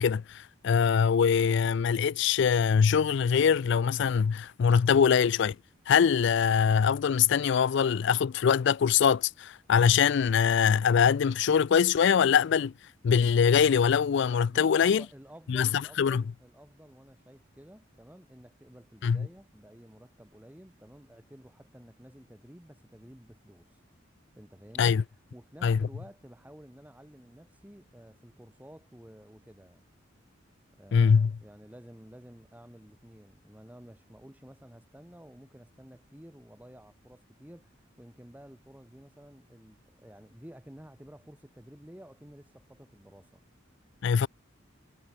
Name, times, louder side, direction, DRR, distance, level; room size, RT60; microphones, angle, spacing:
voice 1, 0.0-5.6 5.9-12.7 13.0-15.0 15.5-16.2 19.0-19.3 24.8-25.0 25.6-25.8 30.9-31.3 44.0-44.3, left 7 dB, 60° left, 0.4 m, -23 dB
voice 2, 14.5-23.8 24.4-29.8 30.7-43.4, equal, 10° right, 1.5 m, -52 dB
head